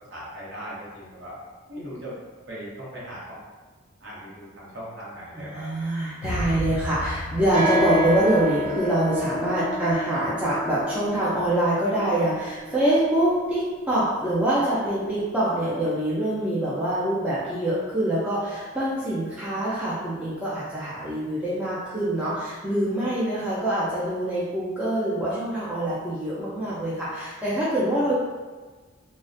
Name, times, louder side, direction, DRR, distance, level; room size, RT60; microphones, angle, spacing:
voice 1, 0.1-1.4 1.7-2.2 2.5-3.4 4.0-5.7, equal, 55° right, -6 dB, 0.7 m, -38 dB
voice 2, 5.3-28.1, right 1 dB, 5° right, -10 dB, 0.3 m, -25 dB
sound 1, 6.2-9.4 9.7-9.9, left 1 dB, 75° left, 0.4 m, -34 dB
sound 2, 7.5-15.3, left 1 dB, 85° right, 1.0 m, -30 dB
2.4 x 2.0 x 2.5 m, 1.3 s
head